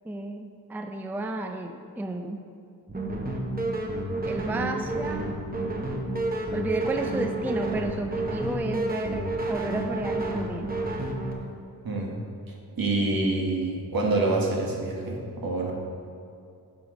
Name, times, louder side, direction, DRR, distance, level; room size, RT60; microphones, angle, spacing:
voice 1, 0.0-2.4 4.2-5.3 6.5-10.7, right 2 dB, 5° right, 5 dB, 0.4 m, -32 dB
sound 1, 2.9-11.3, right 2 dB, 25° right, 1.0 m, -30 dB
voice 2, 11.8-12.2 12.5-15.7, right 2 dB, 65° right, -2 dB, 1.5 m, -27 dB
10.0 x 4.9 x 3.9 m, 2.5 s
wide cardioid pair, 95°, 37 cm